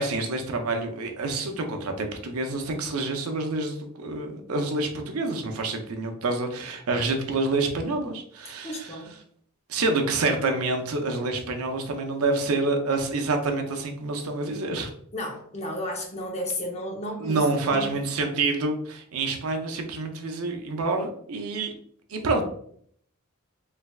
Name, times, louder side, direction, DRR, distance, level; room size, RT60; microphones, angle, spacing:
voice 1, 0.0-9.0 9.7-14.9 17.2-21.7 22.1-22.4, right 3 dB, 85° right, 4 dB, 0.6 m, -27 dB
voice 2, 8.6-9.1 15.1-17.4 17.7-17.9, left 1 dB, 30° left, 0 dB, 0.7 m, -33 dB
3.3 x 3.3 x 2.3 m, 0.63 s
head